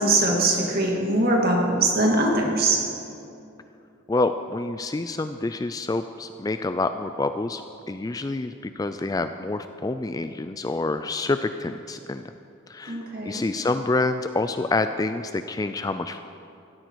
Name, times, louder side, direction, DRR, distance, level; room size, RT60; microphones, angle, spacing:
voice 1, 0.0-2.8 12.9-13.5, right 2 dB, 45° right, 0 dB, 2.2 m, -22 dB
voice 2, 4.1-7.6 7.9-12.2 12.7-16.2, left 2 dB, 15° left, 9 dB, 0.3 m, -27 dB
16.0 x 13.5 x 4.7 m, 2.6 s
head